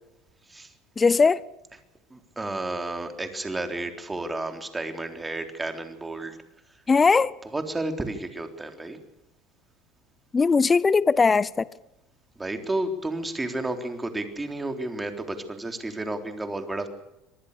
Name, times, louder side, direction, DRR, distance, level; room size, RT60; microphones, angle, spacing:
voice 1, 1.0-1.4 6.9-7.3 10.3-11.7, left 4 dB, 20° left, 0.8 m, -19 dB
voice 2, 2.1-6.4 7.5-9.0 12.4-16.9, right 2 dB, 15° right, 3.6 m, -32 dB
25.5 x 19.5 x 6.8 m
supercardioid pair, 115°, 0 cm